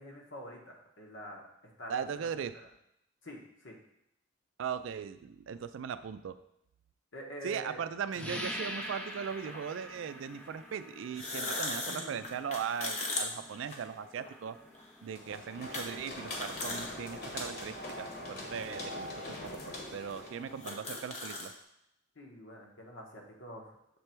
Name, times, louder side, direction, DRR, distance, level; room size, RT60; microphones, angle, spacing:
voice 1, 0.0-2.3 3.2-3.7 7.1-7.8 11.9-12.3 22.2-23.7, equal, 75° left, 0 dB, 1.2 m, -47 dB
voice 2, 1.9-2.5 4.6-6.4 7.4-14.6 15.0-21.5, right 7 dB, 75° right, 12 dB, 0.3 m, -39 dB
sound 1, 8.1-8.2 9.4-9.6 11.0-14.3 14.7-14.9 15.7-15.9 16.2-16.9 17.3-17.4 18.3-18.4 19.2-19.3 19.5-19.6 20.1-20.2 20.4-21.5, left 2 dB, 35° left, 0.8 m, -37 dB
sound 2, 8.1-18.4, equal, 5° left, 0.4 m, -47 dB
sound 3, 15.1-20.6, left 1 dB, 50° left, 1.1 m, -42 dB
6.8 x 3.3 x 4.5 m, 0.79 s
head